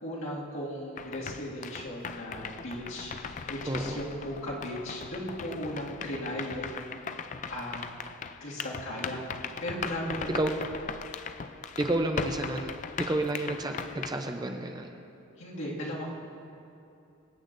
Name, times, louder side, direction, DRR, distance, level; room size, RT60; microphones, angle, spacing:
voice 1, 0.0-7.0 7.5-7.8 8.4-10.6 15.4-16.1, equal, 70° left, -5 dB, 2.0 m, -37 dB
sound 1, 1.0-14.1, left 6 dB, 35° left, 0.3 m, -39 dB
voice 2, 3.7-4.0 10.3-10.5 11.8-14.9, right 1 dB, 20° right, 4 dB, 0.5 m, -30 dB
24.0 x 8.4 x 2.6 m, 2.7 s
head